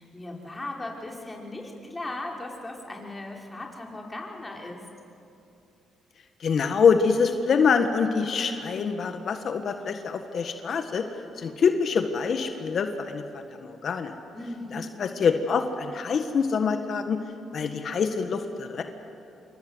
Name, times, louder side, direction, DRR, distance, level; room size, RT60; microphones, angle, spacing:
voice 1, 0.0-4.9 14.3-15.0, left 2 dB, 20° left, 0 dB, 5.2 m, -37 dB
voice 2, 6.4-11.0 11.4-14.1 14.7-17.2 17.5-18.8, left 5 dB, 60° left, 7 dB, 1.6 m, -25 dB
27.5 x 23.5 x 8.1 m, 2.7 s
supercardioid pair, 70°, 0 cm